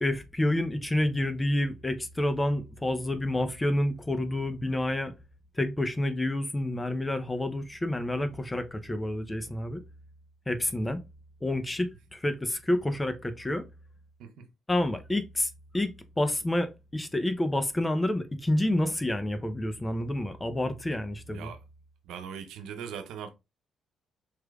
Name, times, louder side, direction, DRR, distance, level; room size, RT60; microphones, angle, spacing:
voice 1, 0.0-5.1 5.6-9.8 10.5-11.0 11.4-13.7 14.7-21.5, left 1 dB, 15° left, 0.6 m, -29 dB
voice 2, 22.0-23.3, right 7 dB, 90° right, 0.7 m, -40 dB
4.8 x 3.2 x 2.3 m
cardioid pair, 90°, 0 cm